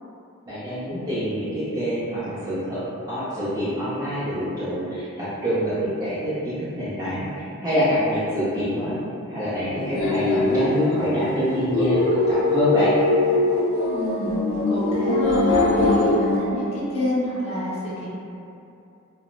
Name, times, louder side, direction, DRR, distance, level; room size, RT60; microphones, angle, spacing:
voice 1, 0.5-2.8 3.1-8.9 9.3-12.9, equal, 20° right, -14 dB, 0.5 m, -26 dB
sound 1, 9.8-16.4, left 2 dB, 70° left, 0.4 m, -22 dB
voice 2, 13.9-14.4 14.7-18.1, left 1 dB, 30° left, -10 dB, 0.8 m, -27 dB
3.0 x 2.0 x 2.3 m, 2.7 s
head